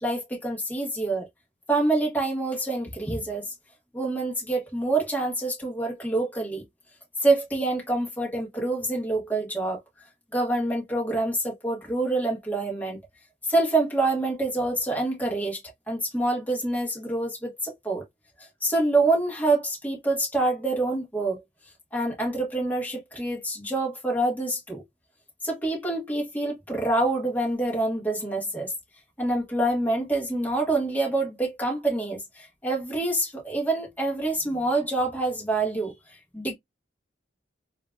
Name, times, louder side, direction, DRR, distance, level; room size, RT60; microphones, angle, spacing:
voice 1, 0.0-1.3 1.7-3.5 3.9-6.6 7.2-9.8 10.3-13.0 13.5-15.6 15.9-18.0 18.6-21.4 21.9-24.8 25.4-28.7 29.2-35.9 36.3-36.5, right 2 dB, 10° left, 1.2 m, -26 dB
3.7 x 2.5 x 2.3 m
head